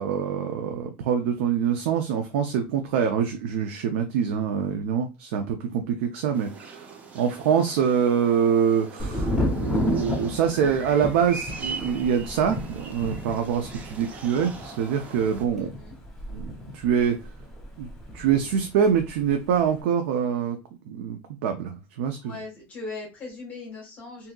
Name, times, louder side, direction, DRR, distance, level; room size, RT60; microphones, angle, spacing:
voice 1, 0.0-6.9 7.1-15.7 16.3-17.2 17.8-17.9 18.1-20.6 20.9-22.4, right 7 dB, 80° right, 0.5 m, -25 dB
sound 1, 6.3-15.4, right 4 dB, 25° right, 0.5 m, -41 dB
Thunder, 9.0-18.6 18.9-19.6, left 1 dB, 5° left, 0.8 m, -32 dB
voice 2, 15.5-16.0 22.2-24.3, left 3 dB, 25° left, 1.3 m, -39 dB
3.6 x 2.8 x 2.2 m
cardioid pair, 160°, 7 cm